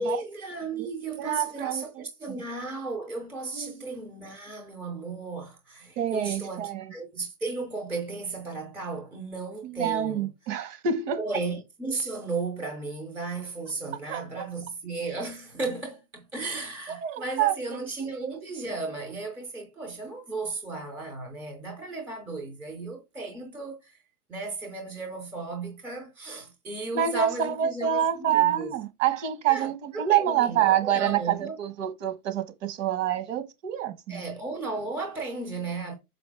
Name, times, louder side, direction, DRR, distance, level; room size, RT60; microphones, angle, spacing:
voice 1, 0.0-10.3 11.2-24.0 24.3-28.7 29.5-31.6 34.1-36.0, right 3 dB, 5° right, 0.4 m, -35 dB
voice 2, 1.2-2.4 3.5-3.8 6.0-6.8 9.6-11.4 14.1-14.2 16.9-17.8 18.2-18.3 26.9-34.2, right 10 dB, 55° right, 1.6 m, -27 dB
6.3 x 5.0 x 3.5 m
supercardioid pair, 150°, 46 cm